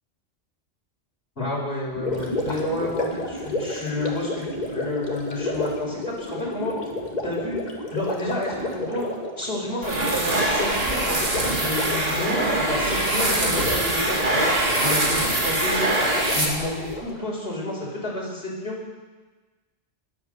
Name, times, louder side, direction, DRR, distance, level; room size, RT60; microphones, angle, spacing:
voice 1, 1.4-6.7 7.2-7.6 7.9-9.0 9.4-14.5 14.8-15.9 16.3-18.8, left 1 dB, 55° left, -4 dB, 5.4 m, -30 dB
Gurgling, 1.9-17.2, left 2 dB, 35° left, 2.1 m, -32 dB
sound 1, 9.8-16.9, right 1 dB, 55° right, 2.4 m, -23 dB
20.5 x 8.6 x 6.8 m, 1.2 s
omnidirectional pair, 1.2 m